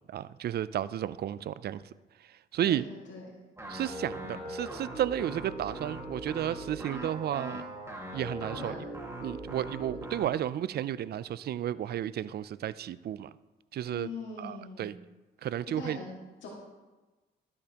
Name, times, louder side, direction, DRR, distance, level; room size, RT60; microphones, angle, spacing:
voice 1, 0.1-1.8 2.5-2.8 3.7-7.6 8.1-8.7 9.2-13.3 13.7-14.1 14.4-14.9 15.4-16.0, right 11 dB, 55° right, 17 dB, 0.4 m, -32 dB
voice 2, 2.6-3.3 8.5-8.8 13.9-14.9 15.8-16.5, left 3 dB, 70° left, -4 dB, 2.0 m, -42 dB
sound 1, 3.6-10.3, right 1 dB, 15° right, 1.8 m, -40 dB
13.0 x 8.5 x 2.9 m, 1.2 s
cardioid pair, 90°, 20 cm